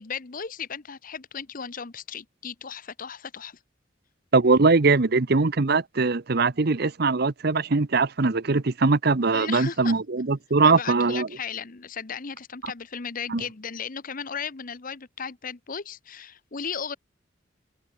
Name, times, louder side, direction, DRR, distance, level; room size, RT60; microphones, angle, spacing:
voice 1, 0.0-3.6 9.3-10.0 10.6-17.0, left 6 dB, 45° left, 0.9 m, -36 dB
voice 2, 4.3-11.3 13.3-13.4, right 3 dB, 55° right, 0.8 m, -21 dB
head